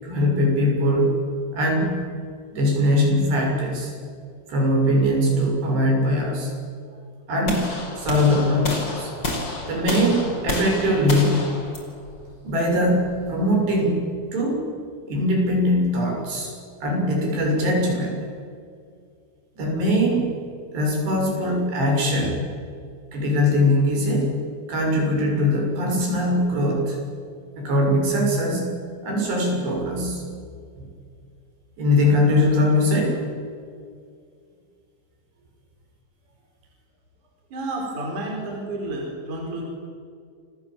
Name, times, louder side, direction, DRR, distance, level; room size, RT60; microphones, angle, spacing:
voice 1, 0.0-1.2 1.5-2.0 2.5-3.9 4.5-6.5 7.3-7.7 8.0-9.1 9.7-11.4 12.4-14.1 14.3-14.6 15.1-16.5 16.8-18.2 19.6-20.3 20.7-22.4 23.1-24.3 24.7-27.0 27.6-28.7 29.0-30.2 30.8-30.9 31.8-33.2, left 1 dB, 60° right, 0 dB, 8.7 m, -21 dB
sound 1, 7.5-13.5, left 1 dB, 25° left, 5.2 m, -30 dB
voice 2, 37.5-39.6, right 2 dB, 40° right, -1 dB, 5.8 m, -30 dB
29.0 x 25.5 x 7.6 m, 2.2 s
omnidirectional pair, 5.5 m